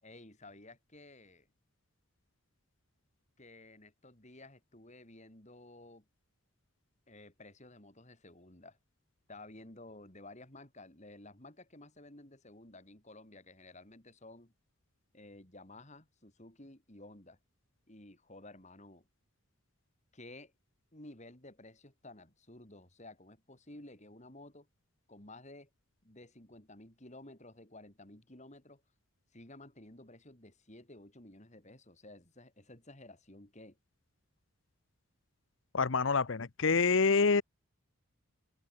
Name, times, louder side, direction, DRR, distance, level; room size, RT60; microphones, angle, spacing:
voice 1, 0.0-1.5 3.4-6.1 7.1-8.8 9.3-14.5 15.1-17.4 17.9-19.1 20.1-20.5 20.9-24.7 25.1-25.7 26.0-28.8 29.3-33.8, left 2 dB, 35° left, 3.4 m, -53 dB
voice 2, 35.7-37.4, left 4 dB, 60° left, 0.8 m, -27 dB
open air
head